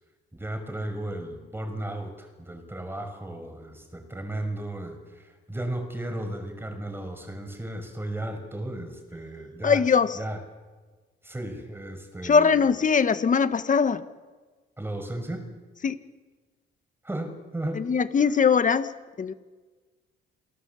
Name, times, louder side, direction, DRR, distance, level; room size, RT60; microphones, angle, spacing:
voice 1, 0.3-9.8 10.1-10.4 11.2-12.5 14.8-15.5 17.0-17.8, right 1 dB, 10° right, 6 dB, 6.0 m, -35 dB
voice 2, 9.6-10.2 12.2-14.0 15.8-16.0 17.7-18.9 19.2-19.3, left 6 dB, 40° left, 11 dB, 1.6 m, -21 dB
27.5 x 19.0 x 8.5 m, 1.3 s
cardioid pair, 90°, 20 cm